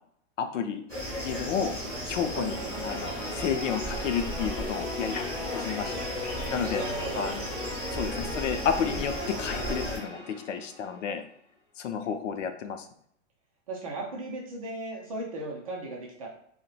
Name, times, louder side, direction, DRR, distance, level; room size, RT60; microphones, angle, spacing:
voice 1, 0.4-0.8 1.2-1.7 2.1-2.6 2.8-5.3 5.5-5.9 6.5-6.8 7.2-7.4 7.9-11.2 11.8-12.9, left 7 dB, 75° left, 7 dB, 0.6 m, -31 dB
sound 1, 0.9-10.0, equal, 5° left, 1.2 m, -35 dB
voice 2, 2.3-2.8 6.7-7.3 7.7-8.0 12.0-12.1 13.7-16.3, right 2 dB, 30° right, -1 dB, 0.4 m, -37 dB
sound 2, 2.4-11.0, left 2 dB, 25° left, 0.7 m, -38 dB
3.9 x 2.1 x 2.4 m, 0.68 s
hypercardioid pair, 165°, 38 cm